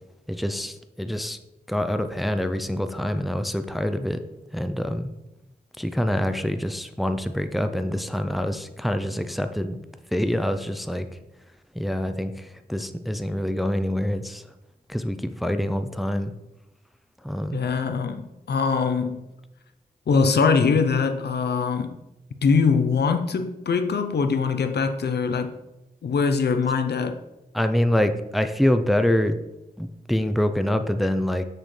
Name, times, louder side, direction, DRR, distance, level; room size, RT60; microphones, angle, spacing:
voice 1, 0.3-1.4 1.7-4.2 4.5-5.1 5.8-9.8 10.1-11.1 11.7-14.5 14.9-16.3 17.2-17.6 27.5-29.4 29.8-31.5, equal, ahead, 0.4 m, -25 dB
voice 2, 17.5-19.2 20.1-22.0 22.4-25.5 26.0-27.2, left 5 dB, 85° left, 0.6 m, -22 dB
6.4 x 6.4 x 3.2 m
wide cardioid pair, 75°, 17 cm